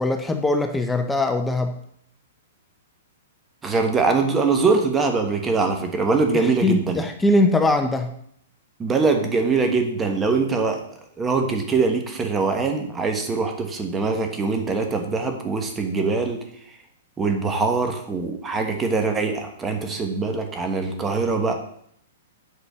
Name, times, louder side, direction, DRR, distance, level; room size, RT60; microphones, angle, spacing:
voice 1, 0.0-1.7 6.3-8.1, left 2 dB, 5° left, 6 dB, 0.6 m, -21 dB
voice 2, 3.6-7.0 8.8-10.8 11.2-16.4 17.2-21.5, right 4 dB, 15° right, 4 dB, 1.2 m, -23 dB
8.2 x 4.2 x 6.8 m, 0.68 s
hypercardioid pair, 150°, 0 cm